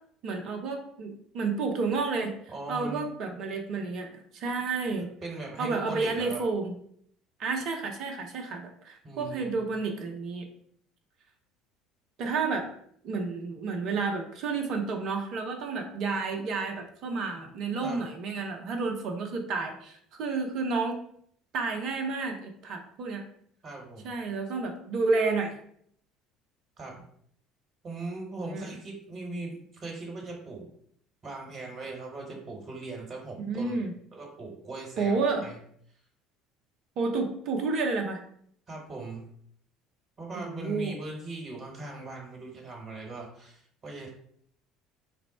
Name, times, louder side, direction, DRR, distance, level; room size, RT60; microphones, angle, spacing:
voice 1, 0.2-2.3 2.7-5.1 5.6-6.7 7.4-10.5 12.2-12.7 13.0-21.0 21.5-23.2 24.0-25.5 28.4-28.8 33.5-33.9 35.0-35.4 37.0-38.2 40.3-41.0, right 4 dB, 55° right, 3 dB, 0.6 m, -30 dB
voice 2, 2.5-3.1 5.2-6.4 9.0-9.6 17.8-18.0 23.6-24.1 26.8-27.0 27.8-30.7 31.2-33.8 34.1-35.6 38.7-39.3 40.2-44.1, right 2 dB, 35° right, -1 dB, 1.2 m, -39 dB
3.3 x 2.0 x 4.2 m, 0.66 s
figure-of-eight pair, 60°, 0 cm